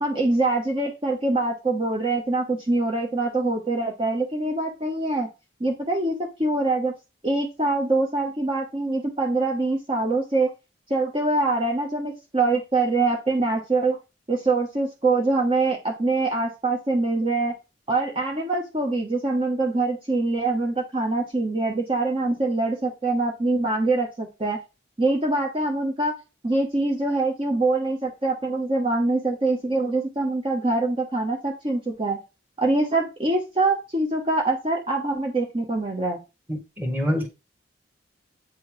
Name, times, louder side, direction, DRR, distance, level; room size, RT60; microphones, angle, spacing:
voice 1, 0.0-5.3 5.6-6.9 7.2-10.5 10.9-14.0 14.3-17.5 17.9-24.6 25.0-26.1 26.4-32.2 32.6-36.2, right 2 dB, 30° right, 1.1 m, -24 dB
voice 2, 36.5-37.3, equal, 10° right, 1.7 m, -26 dB
8.4 x 3.4 x 4.8 m
head